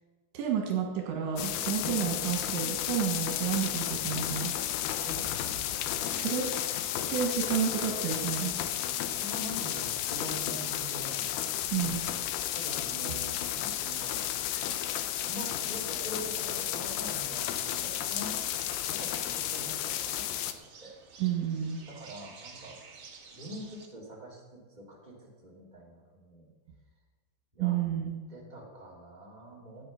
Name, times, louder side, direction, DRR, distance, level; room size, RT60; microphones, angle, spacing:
voice 1, 0.3-4.5 6.1-6.5 7.1-8.5 11.7-12.0 21.2-21.8 27.6-28.2, right 9 dB, 85° right, 1 dB, 4.0 m, -30 dB
sound 1, 1.4-20.5, left 11 dB, 75° left, 2.5 m, -33 dB
voice 2, 1.8-2.4 3.9-4.2 5.0-5.5 9.0-11.3 12.5-14.3 15.2-18.4 18.9-20.9 21.9-23.0 23.3-26.5 27.5-27.8 28.3-29.8, right 1 dB, 15° right, -3 dB, 1.9 m, -45 dB
sound 2, 13.5-23.9, right 5 dB, 60° right, 1.3 m, -53 dB
16.0 x 8.9 x 6.0 m, 1.4 s
omnidirectional pair, 5.2 m